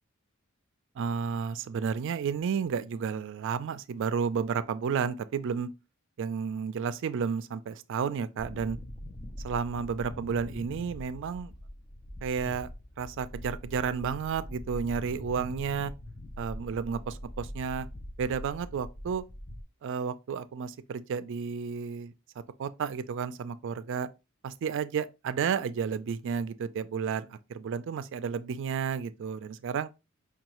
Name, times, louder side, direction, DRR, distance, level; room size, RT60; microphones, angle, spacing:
voice 1, 1.0-5.7 6.2-8.8 9.4-11.5 12.2-12.7 13.0-15.9 16.4-17.9 18.2-19.2 19.8-22.1 22.6-24.1 24.4-29.9, right 6 dB, 60° right, 0.3 m, -32 dB
sound 1, 8.4-19.6, equal, 20° left, 0.4 m, -43 dB
5.4 x 2.3 x 2.9 m
head